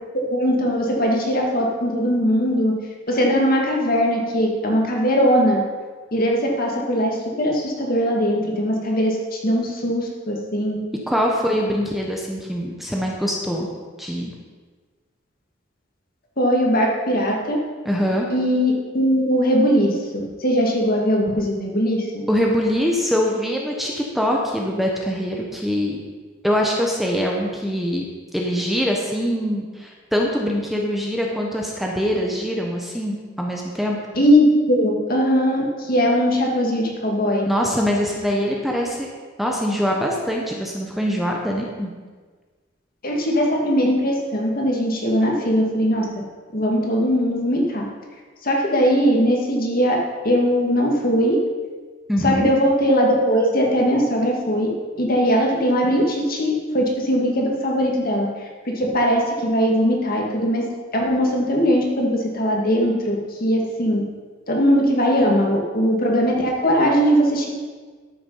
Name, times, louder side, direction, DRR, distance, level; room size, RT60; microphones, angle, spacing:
voice 1, 0.1-2.8 3.1-5.6 6.1-10.8 16.4-17.6 18.3-22.1 34.2-37.4 43.0-46.1 46.5-47.8 48.4-50.0 50.2-51.4 52.2-54.7 55.0-58.3 58.7-63.2 63.4-64.0 64.5-67.5, equal, 50° left, -1 dB, 2.2 m, -20 dB
voice 2, 11.1-13.7 14.0-14.3 17.8-18.3 22.3-26.0 26.4-28.0 28.3-34.0 37.4-39.1 39.4-41.9 52.1-52.5, equal, ahead, -1 dB, 1.1 m, -23 dB
12.5 x 6.9 x 5.6 m, 1.5 s
head